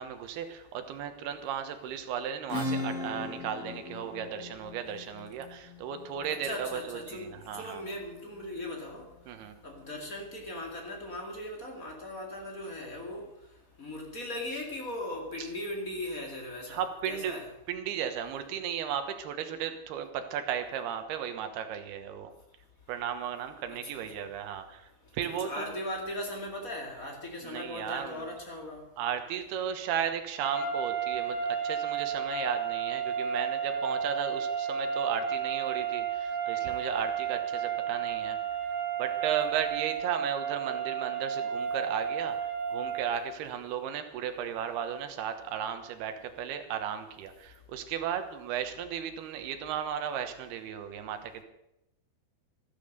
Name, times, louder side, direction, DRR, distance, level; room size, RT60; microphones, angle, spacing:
voice 1, 0.0-7.8 9.3-9.5 15.4-15.5 16.7-17.3 17.7-22.3 22.9-24.9 25.1-25.8 27.4-28.3 29.0-38.4 39.0-51.4, right 8 dB, 85° right, 3.2 m, -35 dB
Acoustic guitar / Strum, 2.5-7.9, left 2 dB, 80° left, 5.0 m, -39 dB
voice 2, 6.3-9.1 9.6-13.3 13.8-17.5 23.8-24.0 25.3-28.8, left 1 dB, 25° left, 2.2 m, -38 dB
sound 1, 30.4-43.3, right 7 dB, 70° right, 4.0 m, -32 dB
13.5 x 12.5 x 6.7 m
omnidirectional pair, 4.4 m